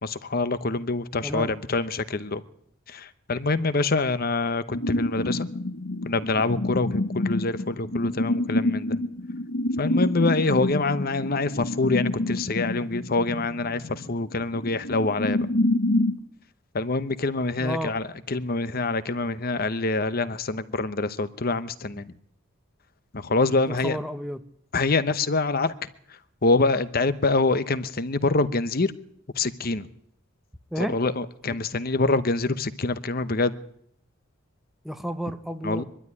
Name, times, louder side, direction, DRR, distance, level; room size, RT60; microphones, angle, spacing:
voice 1, 0.0-2.4 2.9-5.5 6.0-9.0 9.8-15.5 16.7-22.1 23.1-24.0 24.7-25.7 26.4-28.9 29.4-29.9 30.8-33.5 35.6-35.8, left 3 dB, 45° left, 0.9 m, -25 dB
sound 1, 4.7-16.2, left 1 dB, 80° left, 1.4 m, -27 dB
voice 2, 17.5-18.0 23.7-24.4 30.7-31.0 31.5-31.6 34.8-35.8, equal, ahead, 0.8 m, -31 dB
23.0 x 12.5 x 9.7 m
head